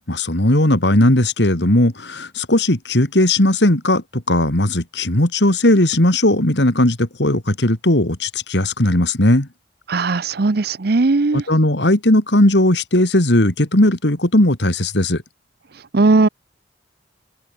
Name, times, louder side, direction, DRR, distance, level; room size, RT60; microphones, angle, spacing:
voice 1, 0.1-9.5 11.3-15.2, left 1 dB, 75° left, 3.2 m, -17 dB
voice 2, 9.9-11.4 15.9-16.3, right 3 dB, 60° right, 0.7 m, -17 dB
open air
head